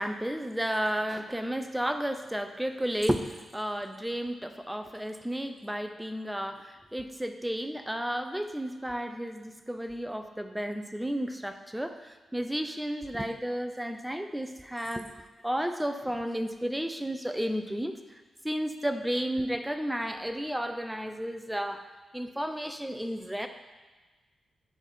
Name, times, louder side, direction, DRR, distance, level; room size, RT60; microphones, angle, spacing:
voice 1, 0.0-15.1 15.4-21.8 22.1-23.5, equal, 5° right, 7 dB, 0.6 m, -32 dB
9.9 x 4.3 x 4.5 m, 1.3 s
supercardioid pair, 50°, 0 cm